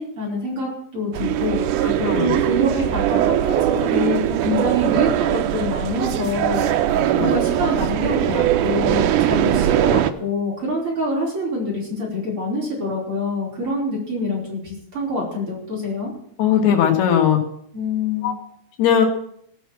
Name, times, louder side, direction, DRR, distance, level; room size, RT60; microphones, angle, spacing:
voice 1, 0.0-1.6 2.1-6.7 7.2-16.1 17.7-18.3, left 1 dB, 35° right, -4 dB, 5.3 m, -25 dB
sound 1, 1.1-10.1, right 12 dB, 85° right, 1.8 m, -20 dB
voice 2, 1.8-2.3 7.0-7.3 16.4-17.4 18.2-18.3 18.8-19.1, left 9 dB, 90° left, 2 dB, 3.9 m, -18 dB
18.5 x 6.2 x 7.5 m, 0.68 s
omnidirectional pair, 4.5 m